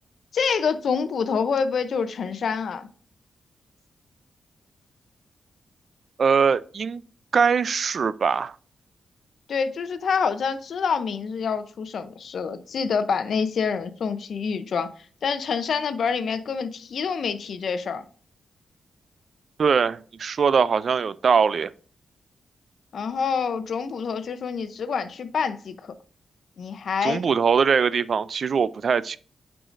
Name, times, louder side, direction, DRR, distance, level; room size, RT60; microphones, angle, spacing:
voice 1, 0.3-2.9 9.5-14.9 15.2-18.0 22.9-25.9 26.6-27.2, left 6 dB, 70° left, 0.7 m, -27 dB
voice 2, 6.2-7.0 7.3-8.5 19.6-21.7 27.0-29.2, right 6 dB, 60° right, 0.3 m, -21 dB
8.8 x 4.8 x 2.6 m
cardioid pair, 65°, 0 cm